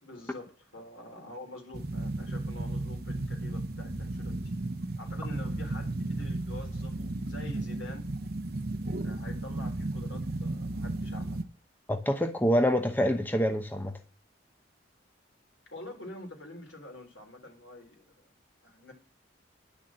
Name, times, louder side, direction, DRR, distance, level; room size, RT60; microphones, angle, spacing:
voice 1, 0.0-4.4 5.0-8.1 9.0-11.5 15.7-18.3 18.6-18.9, left 1 dB, 80° left, 4.2 m, -46 dB
sound 1, 1.7-11.4, right 2 dB, 55° right, 0.9 m, -34 dB
voice 2, 11.9-14.0, equal, 10° left, 0.8 m, -26 dB
10.5 x 6.4 x 7.6 m
head